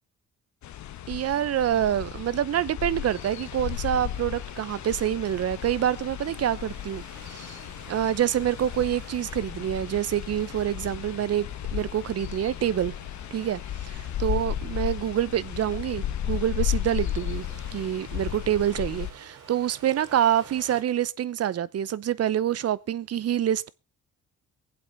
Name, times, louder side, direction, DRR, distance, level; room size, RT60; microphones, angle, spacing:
sound 1, 0.6-19.1, left 11 dB, 70° left, 1.2 m, -34 dB
voice 1, 1.1-7.0 7.3-7.6 7.9-12.9 13.3-13.6 14.2-17.5 17.7-23.7, right 10 dB, 55° right, 0.8 m, -26 dB
sound 2, 3.2-20.8, right 6 dB, 90° right, 4.8 m, -51 dB
22.0 x 7.9 x 4.0 m
cardioid pair, 90°, 30 cm